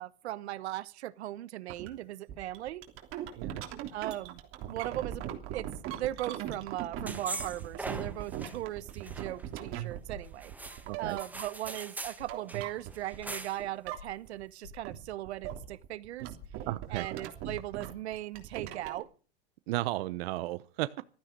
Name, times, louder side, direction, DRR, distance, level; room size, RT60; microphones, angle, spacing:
voice 1, 0.0-2.8 3.9-4.4 4.7-16.4 16.9-19.1, right 14 dB, 75° right, 1.2 m, -38 dB
sound 1, 1.7-1.9 2.3-13.3 13.6-14.4 14.7-19.0, right 11 dB, 40° right, 3.3 m, -40 dB
sound 2, 6.9-7.3 7.9-8.1 9.1-9.2 10.1-10.3 11.0-11.3 12.2-12.3 13.2-13.3 13.9-14.2 14.6-14.9 15.5-15.7 16.4-16.7 17.4-17.6, left 8 dB, 85° left, 4.9 m, -50 dB
sound 3, 7.1-8.6 8.9-9.8 10.4-12.2 12.5-12.6 12.9-13.7, right 2 dB, 5° right, 1.5 m, -41 dB
voice 2, 10.9-11.2 16.7-17.1 19.7-20.9, right 17 dB, 60° right, 0.9 m, -34 dB
15.0 x 13.5 x 5.3 m
supercardioid pair, 135°, 33 cm